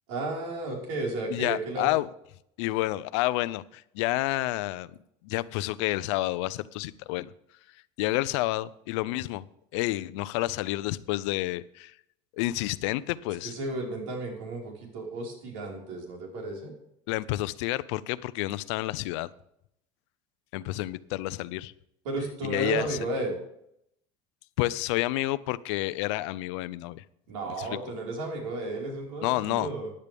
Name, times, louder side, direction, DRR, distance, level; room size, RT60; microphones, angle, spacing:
voice 1, 0.1-1.9 13.4-16.7 22.0-23.4 27.3-29.9, right 2 dB, 90° right, 0 dB, 4.8 m, -33 dB
voice 2, 1.3-2.1 2.6-5.0 5.2-7.3 8.0-9.4 9.7-11.9 12.4-13.5 17.1-19.3 20.5-21.7 22.4-23.0 24.6-27.0 27.6-27.7 29.2-29.7, left 18 dB, 75° left, 17 dB, 0.6 m, -29 dB
15.0 x 10.5 x 3.5 m, 0.75 s
cardioid pair, 180°, 15 cm